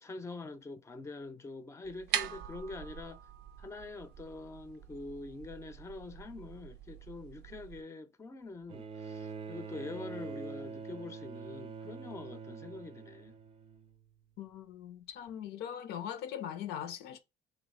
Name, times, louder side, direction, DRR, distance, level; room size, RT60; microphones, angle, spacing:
voice 1, 0.0-3.2 3.6-13.4, left 3 dB, 15° left, 0.5 m, -45 dB
sound 1, 1.8-7.8, right 10 dB, 85° right, 0.5 m, -42 dB
Bowed string instrument, 8.7-14.2 15.3-15.4, right 5 dB, 35° right, 0.5 m, -45 dB
voice 2, 14.4-17.2, left 9 dB, 80° left, 0.6 m, -41 dB
3.1 x 2.7 x 4.1 m
cardioid pair, 110°, 17 cm